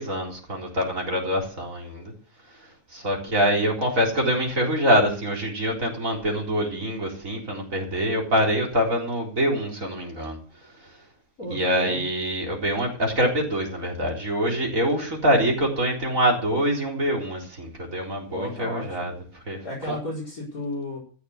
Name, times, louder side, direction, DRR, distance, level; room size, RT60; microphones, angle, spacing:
voice 1, 0.0-2.1 2.9-10.4 11.5-19.1 19.5-19.6 19.9-20.0, equal, 65° right, 0 dB, 4.4 m, -25 dB
voice 2, 3.2-3.8 11.4-12.0 18.3-19.1 19.6-21.0, left 1 dB, 75° left, -3 dB, 5.4 m, -34 dB
14.5 x 6.9 x 8.1 m, 0.40 s
omnidirectional pair, 1.5 m